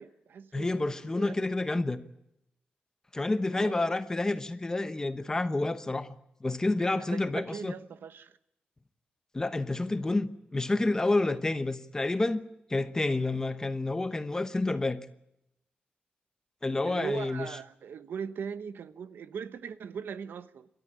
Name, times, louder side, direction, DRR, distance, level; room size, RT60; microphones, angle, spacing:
voice 1, 0.0-1.5 3.5-3.9 6.9-8.4 16.8-20.7, right 7 dB, 80° right, 1.1 m, -40 dB
voice 2, 0.5-2.0 3.1-6.1 6.4-7.7 9.3-12.4 12.7-15.1 16.6-17.5, left 2 dB, 15° left, 1.1 m, -29 dB
28.0 x 13.5 x 10.0 m
wide cardioid pair, 175°, 3 cm